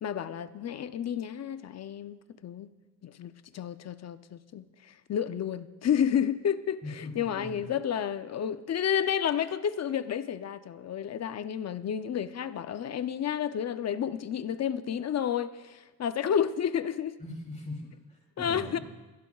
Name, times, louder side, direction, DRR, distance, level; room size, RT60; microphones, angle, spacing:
voice 1, 0.0-2.7 3.0-17.1 18.4-18.8, left 8 dB, 45° left, 0.6 m, -31 dB
voice 2, 6.8-7.5 17.2-18.8, left 2 dB, 20° left, 3.0 m, -41 dB
21.5 x 12.0 x 2.4 m
cardioid pair, 115°, 38 cm